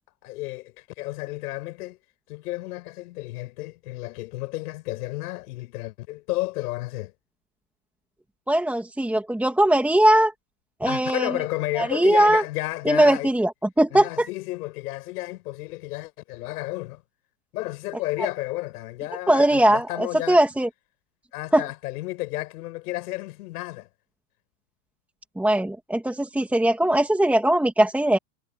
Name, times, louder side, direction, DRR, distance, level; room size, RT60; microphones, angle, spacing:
voice 1, 0.2-2.0 2.3-7.1 10.8-13.3 13.9-17.0 17.5-20.4 21.3-23.9, left 19 dB, 70° left, 6.9 m, -32 dB
voice 2, 8.5-10.3 10.8-11.4 11.8-12.4 12.9-13.5 13.8-14.3 19.3-20.7 21.5-21.6 25.4-28.2, right 1 dB, 5° right, 2.5 m, -20 dB
supercardioid pair, 145°, 48 cm